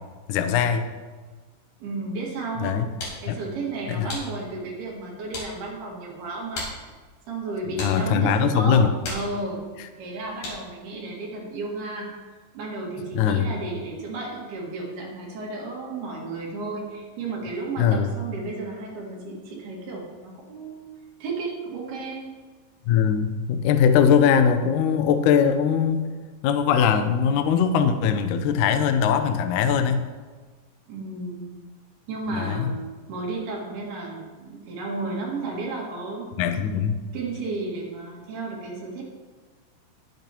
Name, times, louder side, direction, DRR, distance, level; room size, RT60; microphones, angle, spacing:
voice 1, 0.3-0.9 2.6-2.9 3.3-3.4 3.9-4.1 7.8-8.9 13.1-13.5 17.8-18.1 22.9-26.1 26.4-30.1 32.4-32.7 36.4-37.0, left 7 dB, 90° left, 7 dB, 1.7 m, -21 dB
voice 2, 1.8-3.0 3.2-6.7 7.3-8.8 9.1-9.7 10.0-12.1 12.5-20.9 21.2-22.3 30.9-31.5 32.1-32.8 33.1-36.6 37.1-39.0, right 3 dB, 70° right, -3 dB, 4.0 m, -33 dB
sound 1, 2.6-10.9, left 2 dB, 60° left, 5.3 m, -40 dB
20.0 x 8.7 x 3.0 m, 1.4 s
omnidirectional pair, 4.6 m